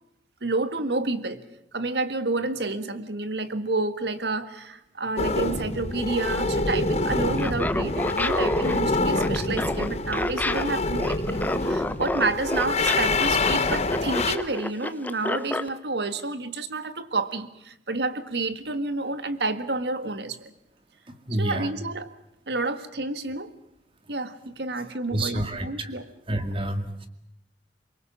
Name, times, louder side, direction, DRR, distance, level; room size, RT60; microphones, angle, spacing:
voice 1, 0.4-1.4 1.7-20.5 21.3-22.1 22.5-23.5 24.1-26.1, right 3 dB, 70° right, 12 dB, 1.7 m, -29 dB
sound 1, 5.2-14.4, left 2 dB, 40° left, 1.3 m, -26 dB
Laughter, 7.4-15.7, left 1 dB, 10° left, 0.9 m, -29 dB
voice 2, 21.1-21.7 25.1-25.9 26.3-27.1, right 1 dB, 30° right, 8 dB, 2.2 m, -29 dB
24.0 x 22.5 x 7.4 m, 0.81 s
head